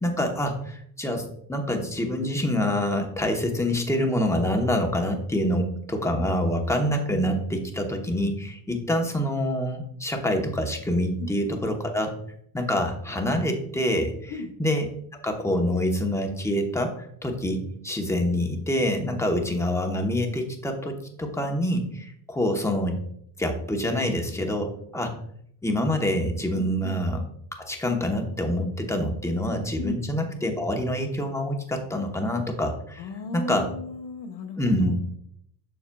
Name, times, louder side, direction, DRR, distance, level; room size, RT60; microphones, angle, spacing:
voice 1, 0.0-12.1 12.5-14.3 14.6-14.9 15.1-23.0 23.4-25.2 25.6-27.2 27.6-33.7 34.6-34.9, left 1 dB, 5° left, 3 dB, 0.9 m, -26 dB
voice 2, 11.2-11.6 14.3-14.5 26.5-27.0 29.8-30.0 33.0-34.9, left 2 dB, 65° left, 1 dB, 1.1 m, -35 dB
7.1 x 6.4 x 2.3 m, 0.69 s
cardioid pair, 115°, 44 cm